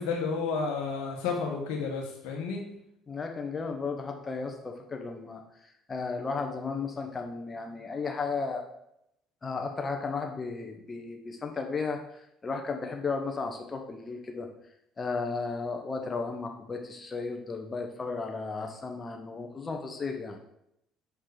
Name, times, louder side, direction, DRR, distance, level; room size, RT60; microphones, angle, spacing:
voice 1, 0.0-2.6, left 5 dB, 75° left, 0 dB, 1.2 m, -31 dB
voice 2, 3.1-8.6 9.4-14.5 15.0-20.4, left 4 dB, 30° left, 3 dB, 1.1 m, -34 dB
5.8 x 4.5 x 4.9 m, 0.79 s
hypercardioid pair, 65°, 0 cm